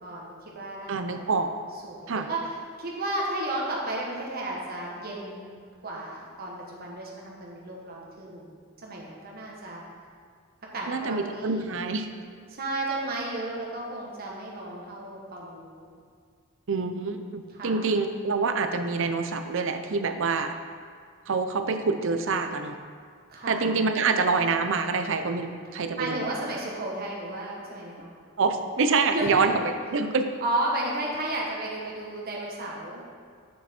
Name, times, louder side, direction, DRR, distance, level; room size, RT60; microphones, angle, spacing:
voice 1, 0.0-1.3 1.8-5.5 5.8-8.5 8.8-9.8 10.7-11.8 12.5-15.9 17.5-17.8 23.3-23.6 26.0-28.1 29.1-29.5 30.4-33.0, right 1 dB, 45° right, -3 dB, 1.4 m, -33 dB
voice 2, 0.9-1.5 2.1-2.3 10.9-12.1 16.7-20.5 21.3-22.8 23.5-26.3 28.4-29.5 29.9-30.3, right 4 dB, 65° right, 7 dB, 0.6 m, -26 dB
7.6 x 6.7 x 4.4 m, 2.1 s
head